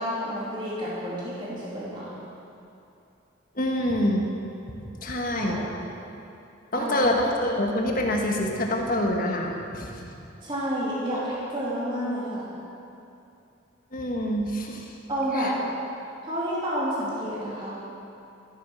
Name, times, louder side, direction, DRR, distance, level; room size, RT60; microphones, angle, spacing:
voice 1, 0.0-2.1 5.3-5.7 6.8-7.0 10.4-12.5 15.1-15.5 16.2-17.8, equal, 25° right, -9 dB, 2.8 m, -30 dB
voice 2, 3.5-4.2 4.7-5.6 6.7-10.1 11.1-11.2 13.9-14.9 15.3-15.5, left 1 dB, 40° left, 1 dB, 1.5 m, -26 dB
14.0 x 9.8 x 6.2 m, 2.7 s
head